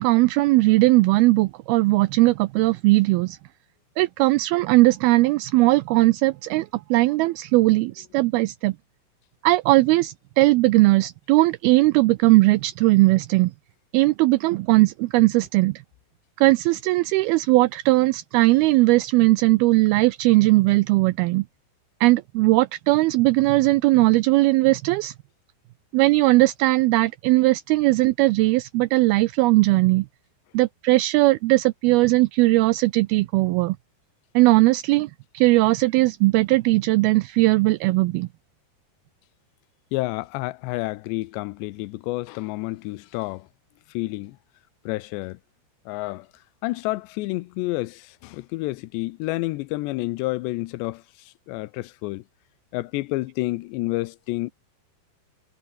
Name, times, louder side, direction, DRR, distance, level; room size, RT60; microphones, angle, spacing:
voice 1, 0.0-3.4 4.0-8.8 9.4-13.5 13.9-15.8 16.4-21.5 22.0-25.1 25.9-30.1 30.5-33.8 34.4-38.3, right 20 dB, 85° right, 2.2 m, -19 dB
voice 2, 39.9-43.5 43.9-44.4 44.9-45.4 45.9-46.3 46.6-52.2 52.7-54.5, left 20 dB, 90° left, 2.9 m, -29 dB
omnidirectional pair, 5.0 m